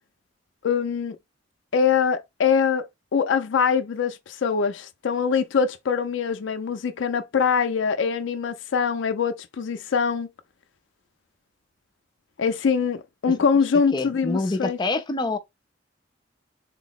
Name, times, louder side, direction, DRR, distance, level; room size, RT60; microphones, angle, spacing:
voice 1, 0.6-1.2 1.7-10.3 12.4-14.8, left 6 dB, 90° left, 0.4 m, -23 dB
voice 2, 13.9-15.4, left 2 dB, 25° left, 0.5 m, -26 dB
3.8 x 2.0 x 3.9 m
head